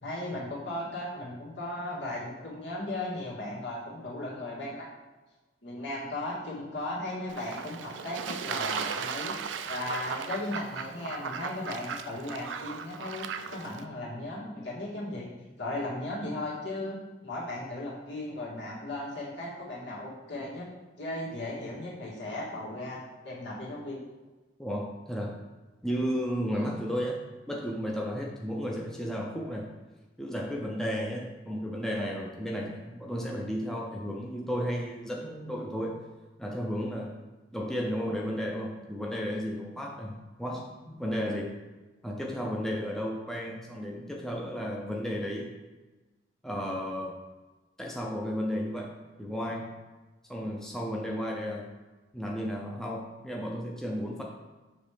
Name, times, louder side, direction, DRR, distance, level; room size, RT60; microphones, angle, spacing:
voice 1, 0.0-4.9 5.6-9.4 9.7-15.3 15.6-17.0 17.2-20.7 21.0-23.0 23.2-24.0 26.5-26.7, left 1 dB, 75° left, -6 dB, 2.0 m, -36 dB
Fowl / Bird / Water, 7.3-13.8, right 6 dB, 85° right, 0.4 m, -36 dB
voice 2, 24.6-25.3 25.8-27.2 27.5-29.7 30.2-36.0 36.4-37.1 37.5-41.6 42.0-45.5 46.4-47.2 47.8-48.9 49.2-49.7 50.3-51.7 52.1-54.2, equal, 5° left, -2 dB, 0.6 m, -33 dB
7.1 x 3.2 x 5.0 m, 1.2 s
head